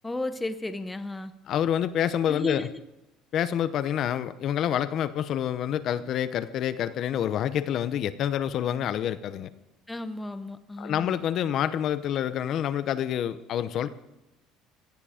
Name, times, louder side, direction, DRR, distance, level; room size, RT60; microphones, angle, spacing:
voice 1, 0.0-1.3 2.3-2.8 9.9-11.1, left 2 dB, 10° left, 10 dB, 0.8 m, -34 dB
voice 2, 1.5-2.7 3.3-9.5 10.8-13.9, left 10 dB, 45° left, 13 dB, 0.8 m, -27 dB
17.5 x 14.0 x 5.0 m, 0.93 s
cardioid pair, 155°, 0 cm